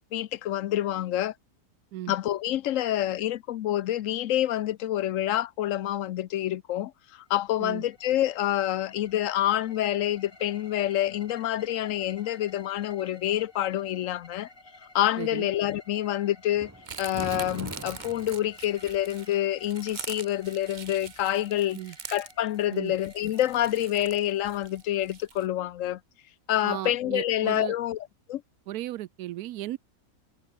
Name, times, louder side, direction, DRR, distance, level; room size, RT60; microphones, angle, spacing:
voice 1, 0.1-1.3 2.1-14.5 14.9-16.7 17.0-21.8 22.1-26.0 26.5-28.0 28.3-28.4, left 13 dB, 65° left, 0.9 m, -27 dB
sound 1, 7.4-25.2, left 2 dB, 35° left, 3.8 m, -54 dB
voice 2, 15.2-15.5 21.7-22.0 22.7-22.9 26.6-27.8 28.7-29.8, right 14 dB, 90° right, 1.1 m, -35 dB
sound 2, 16.5-18.4, right 1 dB, 10° right, 2.0 m, -40 dB
sound 3, 16.8-25.5, right 6 dB, 40° right, 0.8 m, -43 dB
omnidirectional pair, 1.6 m